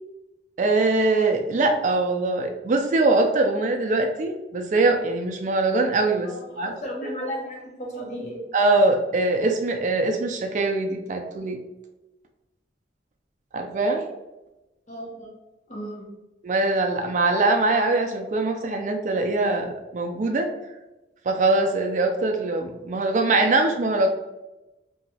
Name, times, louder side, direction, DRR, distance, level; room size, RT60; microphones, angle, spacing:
voice 1, 0.6-6.7 8.5-11.6 13.5-14.1 16.4-20.5 21.3-24.1, right 2 dB, 45° right, 4 dB, 0.3 m, -22 dB
voice 2, 6.2-8.4 14.9-15.3 15.7-16.1, equal, 40° left, -2 dB, 0.8 m, -34 dB
2.9 x 2.7 x 2.7 m, 1.0 s
head